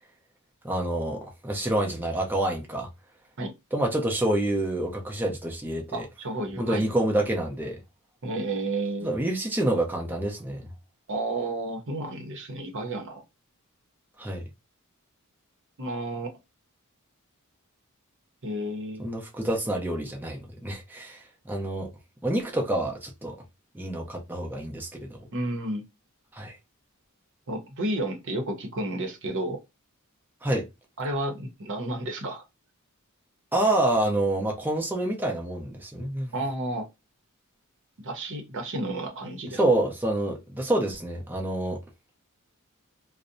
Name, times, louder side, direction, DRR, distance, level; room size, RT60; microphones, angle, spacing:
voice 1, 0.6-2.9 3.7-6.1 6.6-7.8 9.0-10.7 14.2-14.4 19.0-21.9 22.2-23.4 23.7-25.3 26.3-26.5 30.4-30.6 33.5-36.3 39.6-41.8, right 1 dB, 10° right, 0.5 m, -27 dB
voice 2, 5.9-6.8 8.2-9.2 11.1-13.2 15.8-16.3 18.4-19.1 25.3-25.8 27.5-29.6 31.0-32.4 36.3-36.9 38.0-39.6, right 1 dB, 60° right, 0.7 m, -31 dB
2.6 x 2.0 x 2.5 m
head